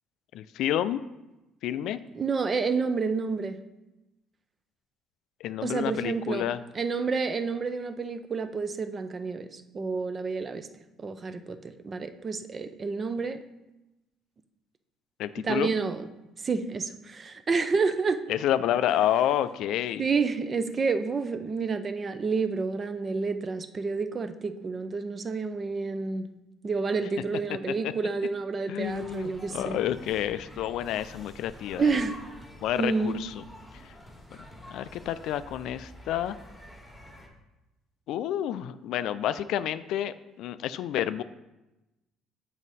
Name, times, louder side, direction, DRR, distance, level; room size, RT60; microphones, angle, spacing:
voice 1, 0.3-1.0 1.6-2.0 5.4-6.6 15.2-15.7 18.3-20.0 27.7-27.9 28.7-31.9 32.6-33.4 33.8-33.9 34.7-36.4 38.1-41.2, left 11 dB, 75° left, 13 dB, 0.3 m, -29 dB
voice 2, 2.1-3.6 5.6-6.5 6.7-10.7 11.0-13.4 15.4-16.1 16.4-18.2 20.0-26.3 26.6-29.8 31.8-32.2 32.8-33.2, right 4 dB, 35° right, 10 dB, 0.5 m, -29 dB
sound 1, 28.8-37.3, left 1 dB, 5° right, 1.5 m, -48 dB
7.4 x 4.9 x 4.1 m, 0.99 s
cardioid pair, 100°, 0 cm